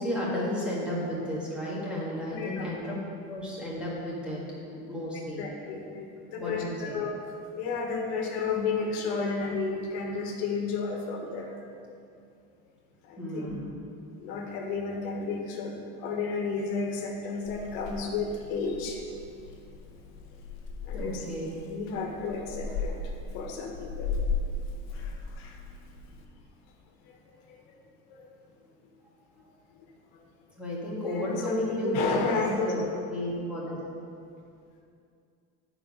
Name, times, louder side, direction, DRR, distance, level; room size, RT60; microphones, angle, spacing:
voice 1, 0.0-3.0 3.3-4.4 4.7-5.4 6.4-7.0 13.2-13.7 20.9-21.5 30.6-32.8 33.1-33.8, equal, 5° right, -6 dB, 1.7 m, -33 dB
voice 2, 2.3-2.6 5.4-11.9 13.0-13.6 14.2-19.1 20.8-23.0 23.3-24.2 27.0-27.2 27.5-27.7 28.1-28.3 29.8-29.9 30.1-30.2 31.0-32.7, left 4 dB, 85° left, 1 dB, 1.4 m, -32 dB
Purr / Meow, 17.4-26.2, left 4 dB, 45° left, 0.9 m, -37 dB
9.9 x 5.0 x 5.4 m, 2.5 s
cardioid pair, 165°, 31 cm